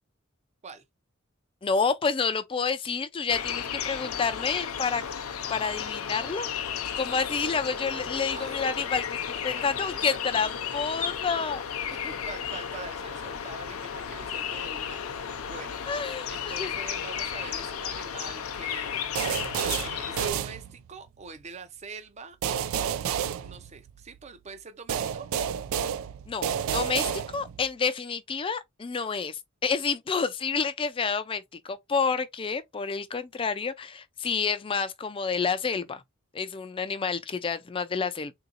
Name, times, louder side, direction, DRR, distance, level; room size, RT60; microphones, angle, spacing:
voice 1, 1.6-5.0 5.5-6.5 7.0-11.6 15.9-16.7 26.3-36.0 36.3-38.3, left 5 dB, 25° left, 0.4 m, -29 dB
sound 1, 3.3-20.3, left 8 dB, 90° left, 0.5 m, -34 dB
voice 2, 11.9-15.8 16.3-19.1 19.8-22.4 23.4-25.3, right 4 dB, 30° right, 0.6 m, -44 dB
sound 2, 19.2-21.1 22.4-24.2 24.9-27.7, right 8 dB, 75° right, 0.3 m, -30 dB
3.8 x 2.7 x 2.5 m
head